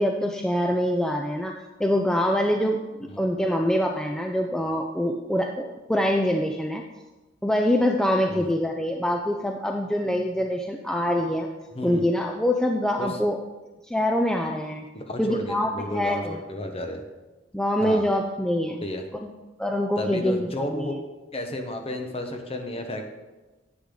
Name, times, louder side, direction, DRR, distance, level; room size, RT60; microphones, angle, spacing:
voice 1, 0.0-1.5 1.8-6.8 7.4-11.5 11.8-13.4 13.9-14.8 15.2-16.4 17.5-18.8 19.2-19.3 19.6-21.0, equal, 5° left, 2 dB, 0.4 m, -25 dB
voice 2, 14.9-17.0 17.8-18.1 18.8-19.0 20.0-21.0 21.3-23.0, left 1 dB, 30° left, 4 dB, 1.1 m, -32 dB
10.0 x 7.9 x 3.9 m, 1.1 s
head